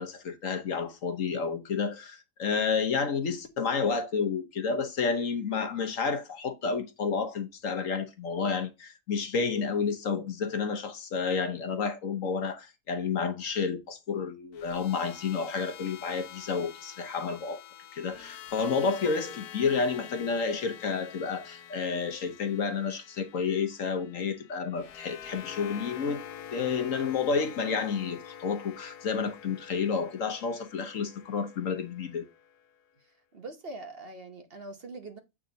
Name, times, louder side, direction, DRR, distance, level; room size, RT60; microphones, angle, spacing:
voice 1, 0.0-17.6 17.9-26.2 26.5-32.2, left 5 dB, 60° left, 1.3 m, -30 dB
sound 1, 14.5-32.7, left 9 dB, 80° left, 1.2 m, -47 dB
voice 2, 33.0-35.2, right 2 dB, 45° right, 1.1 m, -43 dB
8.4 x 3.7 x 4.0 m
omnidirectional pair, 1.7 m